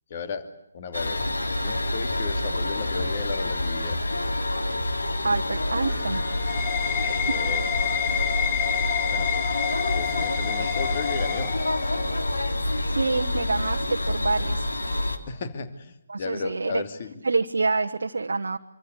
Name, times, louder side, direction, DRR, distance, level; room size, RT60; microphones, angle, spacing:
voice 1, 0.1-0.5 0.7-1.3 1.6-4.0 7.1-7.6 9.1-9.3 9.9-11.6 15.3-17.2, left 4 dB, 35° left, 9 dB, 2.6 m, -34 dB
sound 1, 0.9-15.2, left 1 dB, 70° left, 3.3 m, -27 dB
voice 2, 5.2-6.2 7.0-7.3 12.8-14.7 16.1-16.8 17.2-18.6, right 3 dB, 60° right, 5 dB, 1.2 m, -27 dB
sound 2, 5.8-12.2, left 10 dB, 15° left, 0.9 m, -29 dB
26.5 x 25.0 x 8.3 m, 0.85 s
figure-of-eight pair, 145°, 0 cm